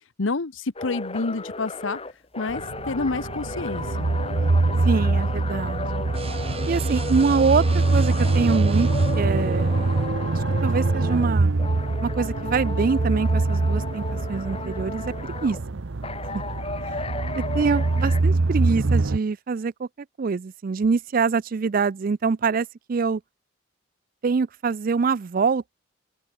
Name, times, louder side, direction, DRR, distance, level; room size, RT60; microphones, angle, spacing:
voice 1, 0.2-2.0 2.4-4.1, left 3 dB, 80° left, 1.0 m, -28 dB
sound 1, 0.8-11.3 11.6-15.6 16.0-18.2, left 3 dB, 30° left, 3.2 m, -35 dB
sound 2, 2.5-19.2, right 3 dB, 75° right, 0.8 m, -24 dB
voice 2, 4.8-6.1 6.7-8.9 9.2-9.8 10.3-11.5 12.0-15.0 15.4-15.8 17.3-19.9 20.2-23.2 24.2-25.7, right 5 dB, 45° right, 0.4 m, -25 dB
sound 3, 6.1-10.1, right 3 dB, 30° right, 3.6 m, -37 dB
open air
head